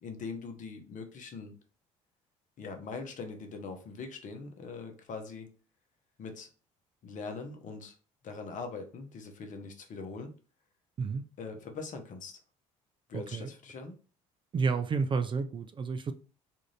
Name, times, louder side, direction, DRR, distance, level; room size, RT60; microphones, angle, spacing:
voice 1, 0.0-1.6 2.6-5.5 6.2-6.5 7.0-8.0 8.2-10.3 11.4-12.4 13.1-14.0, left 4 dB, 50° left, 0.8 m, -42 dB
voice 2, 13.1-13.5 14.5-16.1, right 5 dB, 30° right, 0.4 m, -31 dB
2.6 x 2.5 x 3.2 m
hypercardioid pair, 65°, 17 cm